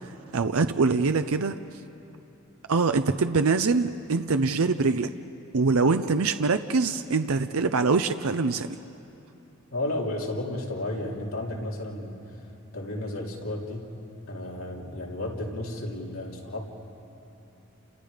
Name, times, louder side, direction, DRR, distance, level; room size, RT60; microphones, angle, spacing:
voice 1, 0.3-1.6 2.7-5.1 5.5-8.7, right 4 dB, 85° right, 9 dB, 0.6 m, -24 dB
voice 2, 9.7-12.2 12.7-13.9 14.3-16.6, left 1 dB, 80° left, -2 dB, 3.3 m, -33 dB
30.0 x 29.0 x 5.1 m, 2.9 s
head